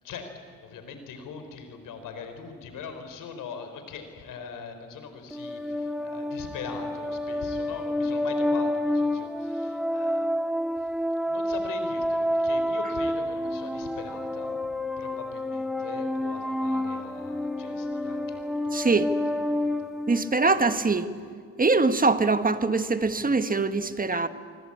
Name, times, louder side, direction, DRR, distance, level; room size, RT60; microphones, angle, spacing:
voice 1, 0.0-10.3 10.8-10.9 11.3-14.6 15.0-19.1 19.4-19.9, left 5 dB, 80° left, 7 dB, 4.1 m, -42 dB
sound 1, 5.3-20.7, left 1 dB, ahead, 1.8 m, -29 dB
voice 2, 18.7-19.1 20.1-21.1 21.6-24.3, right 3 dB, 25° right, 10 dB, 1.5 m, -23 dB
25.5 x 23.5 x 8.7 m, 2.1 s
supercardioid pair, 70°, 32 cm